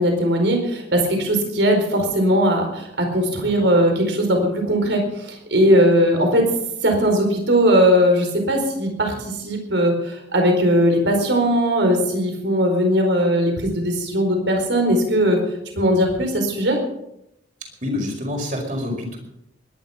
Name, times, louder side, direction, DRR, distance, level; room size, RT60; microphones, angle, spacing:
voice 1, 0.0-6.5 6.8-15.4 15.8-16.8, equal, 80° right, 3 dB, 4.5 m, -19 dB
voice 2, 17.8-19.2, left 1 dB, 45° right, 2 dB, 5.0 m, -26 dB
21.0 x 11.0 x 5.8 m, 0.83 s
head